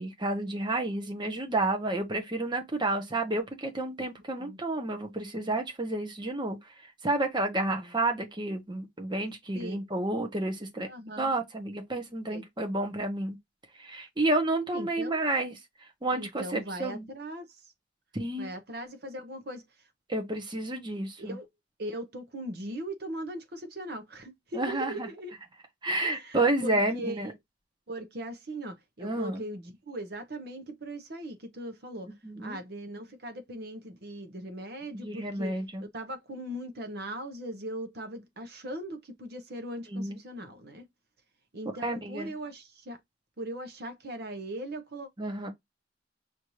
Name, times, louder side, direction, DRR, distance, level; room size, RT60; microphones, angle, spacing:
voice 1, 0.0-6.6 7.0-10.9 11.2-13.4 13.8-15.5 16.0-17.1 18.1-18.5 20.1-21.4 24.5-25.1 25.8-27.3 29.0-29.4 32.2-32.6 34.9-35.8 39.9-40.2 41.8-42.3 45.2-45.5, right 2 dB, 25° right, 1.1 m, -30 dB
voice 2, 7.5-7.9 9.5-9.8 10.8-11.3 12.3-12.4 14.7-15.3 16.1-17.5 18.4-19.6 21.2-21.5 21.8-25.3 26.0-27.3 27.9-32.1 32.4-35.5 35.9-40.8 41.5-43.0 43.4-45.1, right 1 dB, 60° right, 0.9 m, -39 dB
6.2 x 2.7 x 3.1 m
head